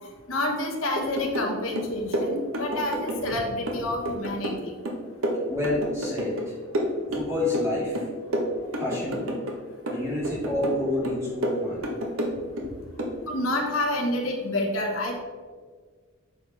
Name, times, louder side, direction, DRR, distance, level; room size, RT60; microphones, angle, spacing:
voice 1, 0.3-4.7 13.2-15.2, left 1 dB, 85° left, 1 dB, 1.6 m, -28 dB
sound 1, 1.0-1.5 1.8-3.4 3.7-6.5 6.7-7.7 7.9-9.6 9.9-10.8 11.0-12.7 13.0-13.2, equal, 85° right, 1.2 m, -29 dB
voice 2, 5.5-6.6 7.1-8.1 8.6-9.3 9.9-11.8, left 2 dB, 15° right, -6 dB, 2.4 m, -29 dB
9.0 x 5.8 x 3.5 m, 1.6 s
head